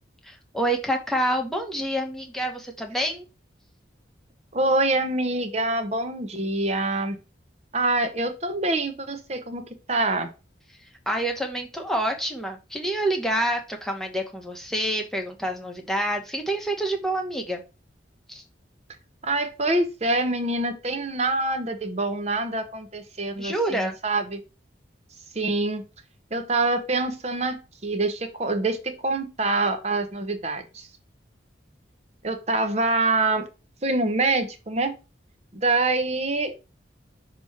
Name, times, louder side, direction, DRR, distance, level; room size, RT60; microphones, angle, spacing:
voice 1, 0.2-3.2 10.8-17.6 18.3-18.4 23.4-24.0, right 1 dB, ahead, 2 dB, 1.0 m, -27 dB
voice 2, 4.5-7.2 7.7-10.3 19.2-24.4 25.3-25.8 26.3-30.9 32.2-33.5 33.8-35.0 35.5-36.5, right 2 dB, 35° right, 8 dB, 0.8 m, -25 dB
6.1 x 3.0 x 5.7 m, 0.30 s
head